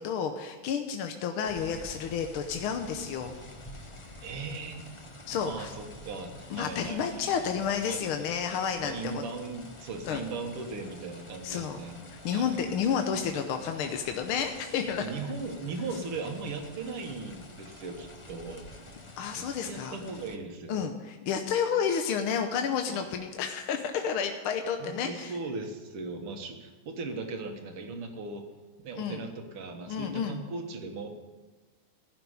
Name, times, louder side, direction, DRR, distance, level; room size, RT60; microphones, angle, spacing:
voice 1, 0.0-3.3 5.3-5.7 6.5-9.2 10.1-10.2 11.4-11.8 12.2-15.0 19.2-20.0 20.7-25.3 29.0-29.2 29.9-30.4, left 7 dB, 75° left, 5 dB, 1.7 m, -31 dB
sound 1, 1.5-20.4, left 2 dB, 30° left, 0.5 m, -48 dB
voice 2, 4.2-4.8 5.4-7.3 7.8-8.1 8.8-12.0 12.3-12.6 15.0-18.6 19.3-20.9 22.9-23.1 24.8-28.4 28.8-31.1, right 3 dB, 80° right, 4 dB, 2.4 m, -38 dB
15.5 x 6.1 x 9.7 m, 1.3 s
omnidirectional pair, 2.4 m